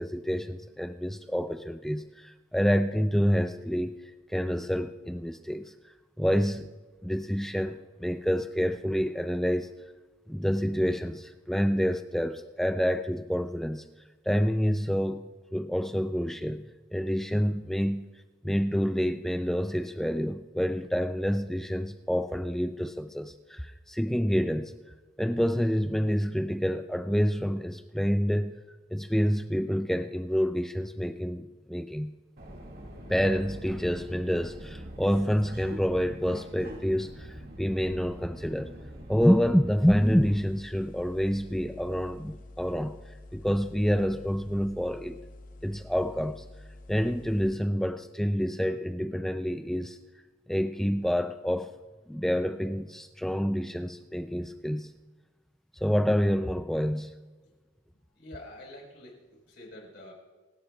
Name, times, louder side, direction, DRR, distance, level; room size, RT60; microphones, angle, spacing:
voice 1, 0.0-3.9 4.3-5.7 6.2-6.7 7.0-9.7 10.3-13.8 14.3-16.7 16.9-18.1 18.4-24.7 25.2-28.6 28.9-32.1 33.1-38.7 39.1-43.0 43.3-45.2 45.6-46.4 46.9-50.0 50.5-51.7 52.1-54.9 55.8-57.1, equal, ahead, 9 dB, 0.4 m, -28 dB
Subway metro underground, 32.4-40.4, equal, 50° right, 2.1 m, -43 dB
sound 1, 40.0-47.6, left 2 dB, 45° left, 0.8 m, -48 dB
voice 2, 58.1-60.1, left 1 dB, 60° left, -1 dB, 4.6 m, -47 dB
27.0 x 16.5 x 2.4 m, 1.2 s
head